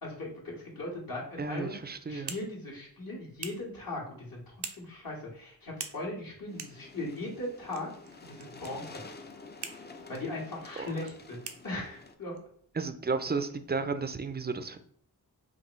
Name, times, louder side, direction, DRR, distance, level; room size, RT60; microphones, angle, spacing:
voice 1, 0.0-1.8 2.1-7.9 8.2-9.0 10.1-11.4 11.6-12.3, left 2 dB, 60° left, -4 dB, 1.7 m, -38 dB
voice 2, 1.4-2.3 10.8-10.9 12.8-14.8, right 4 dB, 25° right, 10 dB, 0.4 m, -33 dB
sound 1, 1.7-14.1, right 7 dB, 85° right, 0.6 m, -49 dB
sound 2, 6.5-12.1, left 3 dB, 25° left, 0.5 m, -49 dB
5.1 x 2.6 x 3.1 m, 0.62 s
cardioid pair, 50°, 38 cm